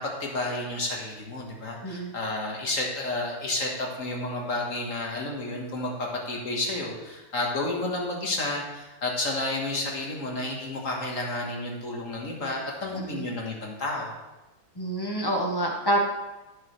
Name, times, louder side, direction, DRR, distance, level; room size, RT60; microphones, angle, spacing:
voice 1, 0.0-14.1, left 2 dB, 45° left, -1 dB, 1.7 m, -31 dB
voice 2, 12.9-13.2 14.8-16.0, right 1 dB, 15° left, -1 dB, 0.9 m, -27 dB
13.0 x 6.6 x 3.2 m, 1.1 s
omnidirectional pair, 2.2 m